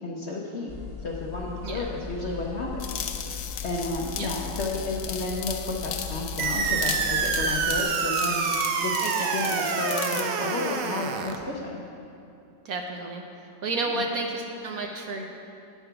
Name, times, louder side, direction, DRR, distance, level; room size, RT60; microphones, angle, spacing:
voice 1, 0.0-0.7 1.0-2.9 3.6-8.4 8.8-9.0 9.3-11.8 13.9-14.0, left 2 dB, 55° left, -2 dB, 0.8 m, -32 dB
sound 1, 0.7-7.8, left 6 dB, 30° left, 1.9 m, -38 dB
sound 2, 2.8-10.3, left 8 dB, 75° left, 1.2 m, -36 dB
sound 3, 6.4-11.4, right 5 dB, 85° right, 1.3 m, -27 dB
voice 2, 9.0-9.5 12.6-13.2 13.6-15.2, right 3 dB, 65° right, 2 dB, 1.0 m, -31 dB
9.1 x 5.8 x 5.7 m, 2.6 s
omnidirectional pair, 1.9 m